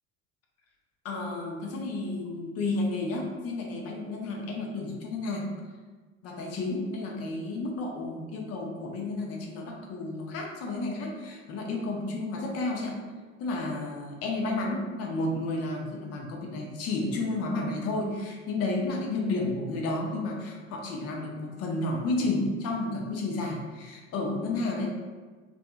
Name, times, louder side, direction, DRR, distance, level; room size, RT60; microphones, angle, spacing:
voice 1, 1.0-5.5 6.2-13.0 13.4-24.9, left 2 dB, 40° left, 0 dB, 0.6 m, -31 dB
2.6 x 2.3 x 2.4 m, 1.4 s
figure-of-eight pair, 65°, 40 cm